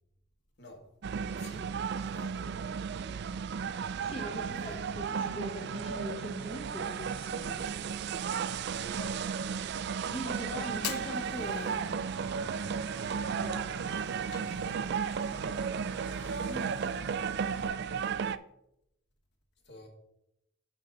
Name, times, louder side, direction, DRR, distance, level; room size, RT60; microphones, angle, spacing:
voice 1, 0.6-2.5 4.6-4.8 8.6-9.3 9.7-9.8 19.6-19.9, equal, 50° left, 1.7 m, -50 dB
sound 1, 1.0-18.4, right 6 dB, 50° right, 0.3 m, -34 dB
voice 2, 4.0-7.7 10.1-12.0 13.4-13.8 16.4-16.7, equal, 25° left, 0.8 m, -41 dB
Fire, 10.7-17.7, left 8 dB, 85° left, 0.6 m, -46 dB
9.0 x 6.7 x 3.8 m
head